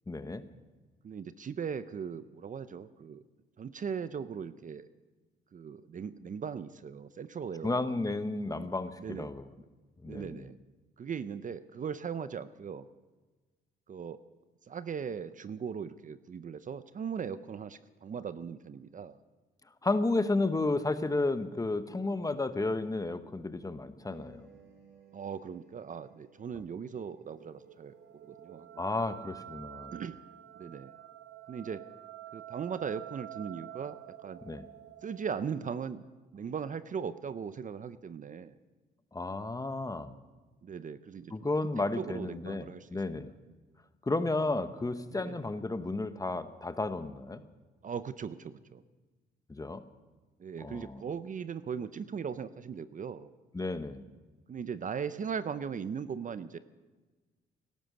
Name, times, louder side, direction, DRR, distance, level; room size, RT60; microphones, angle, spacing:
voice 1, 0.1-0.5 7.6-9.5 10.0-10.4 19.8-24.5 28.8-30.0 34.4-34.7 39.1-40.1 41.3-43.3 44.0-47.4 49.5-49.8 50.6-51.0 53.5-54.0, left 2 dB, 15° left, 10 dB, 1.0 m, -32 dB
voice 2, 1.0-3.2 3.6-4.9 5.5-7.9 9.0-9.3 10.0-10.6 11.0-12.9 13.9-14.2 14.7-19.2 25.1-28.0 28.2-28.8 29.9-30.2 30.6-30.9 31.5-31.8 32.3-34.4 35.0-36.0 36.3-38.5 40.6-41.3 42.0-43.2 45.1-45.4 47.8-48.8 50.4-53.3 54.5-56.6, right 7 dB, 40° right, 13 dB, 0.7 m, -39 dB
sound 1, 24.0-29.5, right 6 dB, 85° right, 5.8 m, -61 dB
sound 2, 27.2-35.8, right 12 dB, 60° right, 1.0 m, -48 dB
17.5 x 12.5 x 6.6 m, 1.3 s
cardioid pair, 90°, 20 cm